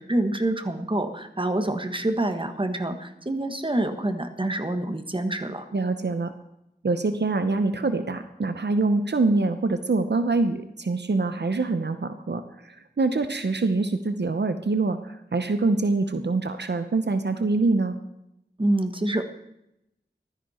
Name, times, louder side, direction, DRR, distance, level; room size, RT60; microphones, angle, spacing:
voice 1, 0.0-5.7 18.6-19.2, right 1 dB, 30° right, 7 dB, 1.5 m, -26 dB
voice 2, 5.7-6.3 6.8-18.0, right 3 dB, 75° right, 9 dB, 0.8 m, -25 dB
15.0 x 13.0 x 4.4 m, 0.84 s
wide cardioid pair, 50°, 18 cm